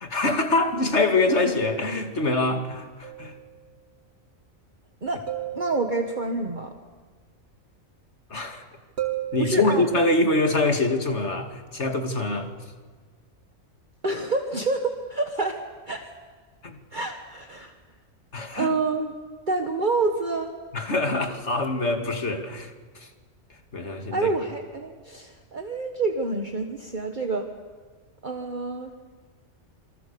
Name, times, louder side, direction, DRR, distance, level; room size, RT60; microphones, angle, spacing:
voice 1, 0.0-3.3 8.3-8.7 9.3-12.5 16.6-16.8 18.3-18.7 20.7-23.1 23.7-24.3, left 2 dB, 55° left, 5 dB, 2.5 m, -24 dB
sound 1, 3.0-3.6 5.3-6.4 9.0-10.3, right 13 dB, 50° right, 3.1 m, -34 dB
voice 2, 5.5-6.7 9.4-9.8 14.0-16.1 16.9-17.7 18.5-19.1 19.5-20.5 24.1-27.5 28.2-28.9, right 3 dB, 35° right, 4 dB, 1.6 m, -27 dB
27.5 x 24.0 x 7.0 m, 1.5 s
omnidirectional pair, 1.4 m